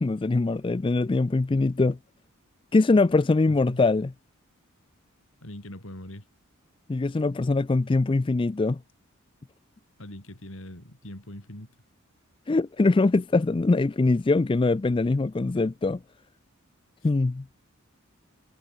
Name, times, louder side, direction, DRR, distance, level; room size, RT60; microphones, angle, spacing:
voice 1, 0.0-2.0 2.7-4.1 6.9-8.8 12.5-16.0 17.0-17.4, left 3 dB, 25° left, 0.4 m, -22 dB
voice 2, 3.5-3.8 5.4-6.3 10.0-11.7 17.0-17.1, left 1 dB, 65° left, 4.5 m, -42 dB
head